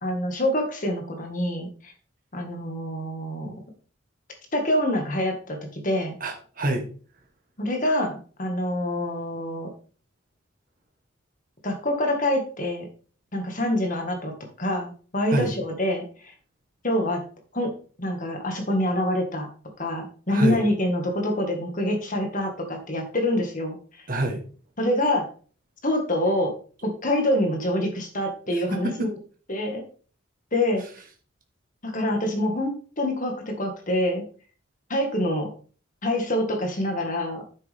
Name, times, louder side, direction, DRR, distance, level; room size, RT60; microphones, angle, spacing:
voice 1, 0.0-1.9 2.3-3.5 4.5-6.2 7.6-9.7 11.6-12.9 13.3-16.3 16.8-17.2 17.5-17.7 18.0-19.5 19.8-23.8 24.8-25.3 25.8-26.5 26.8-29.1 29.5-29.8 30.5-30.8 31.8-34.2 34.9-35.5 36.0-37.4, left 1 dB, 40° left, 3 dB, 2.1 m, -26 dB
voice 2, 6.2-6.9 15.3-15.5 20.3-20.6 24.1-24.4 28.7-29.1, right 1 dB, 45° right, 2 dB, 1.6 m, -26 dB
9.5 x 7.2 x 3.7 m, 0.40 s
head